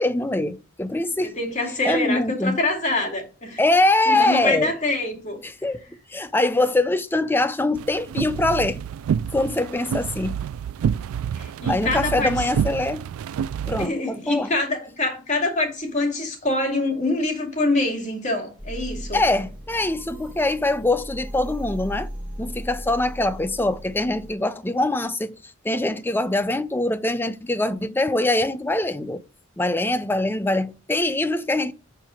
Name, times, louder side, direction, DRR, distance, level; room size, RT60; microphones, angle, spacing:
voice 1, 0.0-1.4 1.8-2.6 3.6-4.7 5.4-5.8 6.1-8.8 9.3-10.4 11.7-13.0 13.7-14.5 19.1-22.1 22.4-25.3 25.6-29.2 29.6-31.7, left 2 dB, 10° left, 0.4 m, -23 dB
voice 2, 1.3-3.6 4.1-5.4 11.4-12.3 13.8-19.2, left 2 dB, 35° left, 2.4 m, -25 dB
sound 1, 7.8-13.9, right 8 dB, 90° right, 0.3 m, -28 dB
sound 2, 18.6-24.3, equal, 5° right, 1.2 m, -37 dB
7.1 x 4.5 x 5.0 m
head